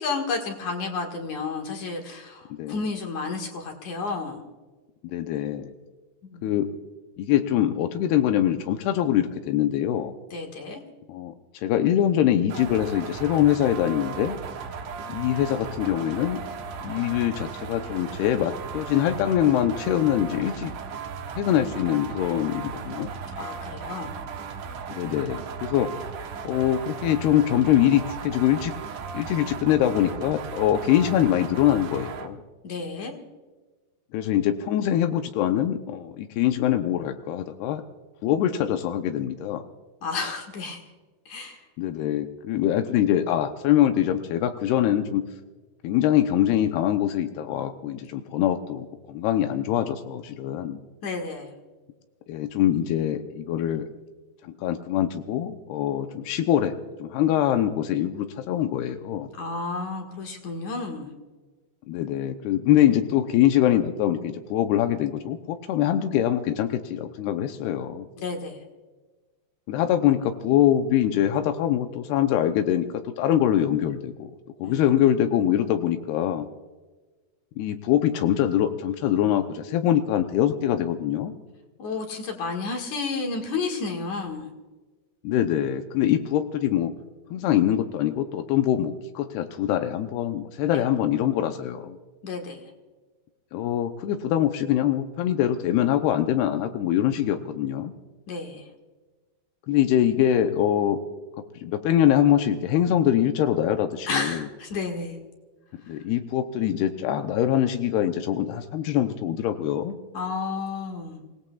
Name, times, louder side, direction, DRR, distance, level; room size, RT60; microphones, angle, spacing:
voice 1, 0.0-4.4 6.2-6.5 10.3-10.8 23.3-24.1 32.6-33.1 40.0-40.8 41.3-41.6 51.0-51.5 59.3-61.1 68.2-68.6 74.6-75.1 81.8-84.5 90.7-90.8 92.2-92.6 98.3-98.6 104.1-105.2 110.1-111.2, left 4 dB, 55° left, 2 dB, 2.7 m, -31 dB
voice 2, 5.0-5.7 6.4-6.7 7.2-10.1 11.1-14.4 15.1-16.4 16.8-20.7 21.4-23.1 24.9-25.9 26.4-28.7 29.1-32.4 34.1-37.8 38.2-39.6 41.8-45.2 45.8-50.8 52.3-53.9 54.4-56.7 57.0-59.3 61.9-68.1 69.7-74.3 74.6-76.5 77.6-81.3 85.2-86.9 87.3-92.0 93.5-97.9 99.7-101.0 101.6-104.5 105.9-110.0, left 11 dB, 85° left, 7 dB, 2.7 m, -23 dB
sound 1, 12.5-32.3, right 6 dB, 65° right, 2.5 m, -36 dB
27.5 x 17.5 x 2.4 m, 1.3 s
omnidirectional pair, 4.5 m